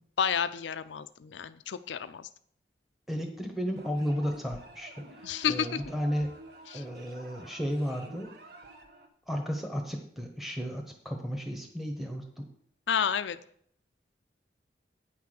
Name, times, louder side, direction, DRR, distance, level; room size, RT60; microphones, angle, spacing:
voice 1, 0.2-2.3 5.2-5.8 6.7-6.8 12.9-13.4, left 7 dB, 85° left, 13 dB, 0.5 m, -30 dB
voice 2, 3.1-6.3 6.7-8.3 9.3-12.5, equal, ahead, 3 dB, 1.1 m, -33 dB
sound 1, 3.8-9.1, right 2 dB, 60° right, 1.3 m, -50 dB
9.4 x 5.9 x 6.4 m, 0.64 s
head